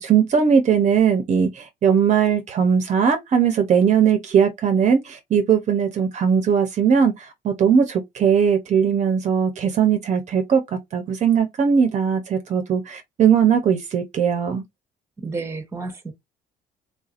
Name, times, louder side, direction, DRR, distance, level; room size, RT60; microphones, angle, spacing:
voice 1, 0.0-14.6, right 7 dB, 45° right, 0.8 m, -19 dB
voice 2, 15.2-16.1, right 3 dB, 15° right, 1.1 m, -31 dB
3.6 x 2.7 x 2.5 m
cardioid pair, 110°, 17 cm